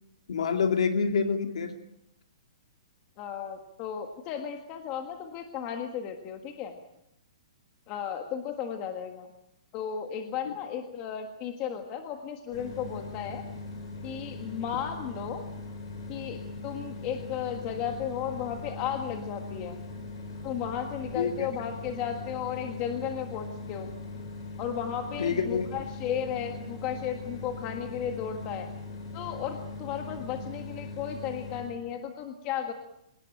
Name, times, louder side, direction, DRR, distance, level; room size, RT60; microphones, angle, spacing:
voice 1, 0.3-1.8 21.1-21.5 25.2-25.7 30.2-30.3, left 5 dB, 65° left, 6 dB, 2.3 m, -27 dB
voice 2, 3.2-6.8 7.9-9.3 9.7-13.5 14.0-15.4 16.1-19.8 20.4-23.9 24.6-28.7 29.1-32.7, left 8 dB, 20° left, 5 dB, 1.6 m, -34 dB
sound 1, 12.5-31.8, left 3 dB, 40° left, 6.3 m, -40 dB
27.0 x 18.0 x 8.9 m, 0.82 s
hypercardioid pair, 180°, 3 cm